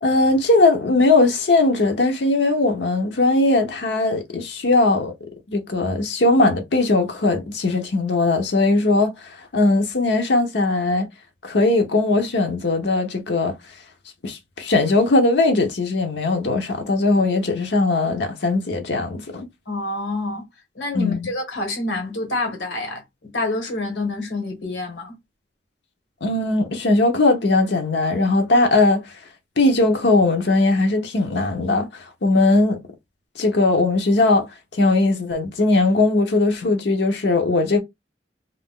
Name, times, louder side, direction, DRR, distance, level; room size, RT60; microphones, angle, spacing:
voice 1, 0.0-5.1 5.5-11.1 11.4-13.5 14.2-19.5 20.9-21.2 26.2-29.0 29.6-32.8 33.4-34.5 34.8-37.8, left 2 dB, 70° left, 0.7 m, -19 dB
voice 2, 19.7-20.4 20.8-25.1, left 2 dB, 85° left, 1.4 m, -27 dB
2.5 x 2.3 x 3.5 m
head